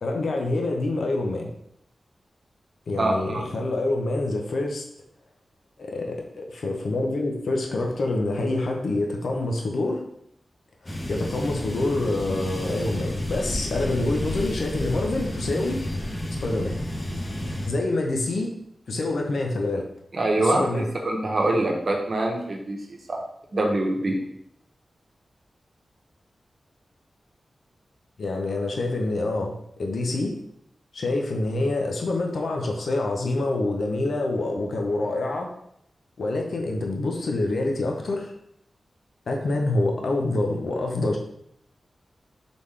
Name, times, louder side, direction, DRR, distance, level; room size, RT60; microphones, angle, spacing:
voice 1, 0.0-1.5 2.9-4.8 5.8-10.0 10.8-15.8 16.4-16.8 17.4-18.5 18.9-19.9 20.4-20.9 28.2-30.3 30.9-35.5 36.2-38.3 39.3-41.2, left 2 dB, 75° left, 1 dB, 0.7 m, -26 dB
voice 2, 3.0-3.5 20.1-23.2 23.5-24.2, right 2 dB, 55° right, 0 dB, 0.9 m, -25 dB
sound 1, 10.9-17.7, left 1 dB, 30° left, 1.0 m, -31 dB
4.1 x 3.5 x 3.3 m, 0.72 s
cardioid pair, 60°, 0 cm